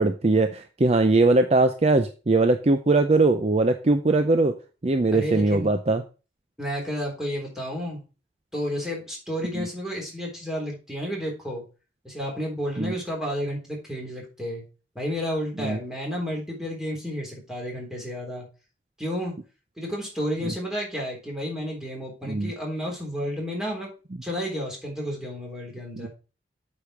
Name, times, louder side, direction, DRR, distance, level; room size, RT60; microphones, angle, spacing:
voice 1, 0.0-4.6 4.8-6.0 9.5-9.7 12.8-12.9 15.6-15.8 20.4-20.5 22.2-22.5 26.0-26.1, right 2 dB, 35° right, 8 dB, 0.6 m, -21 dB
voice 2, 5.1-5.7 6.6-8.0 8.5-11.6 12.0-14.6 15.0-18.5 19.0-19.4 19.8-23.9 24.2-26.1, equal, 5° right, -3 dB, 3.7 m, -31 dB
8.4 x 5.0 x 6.1 m, 0.33 s
head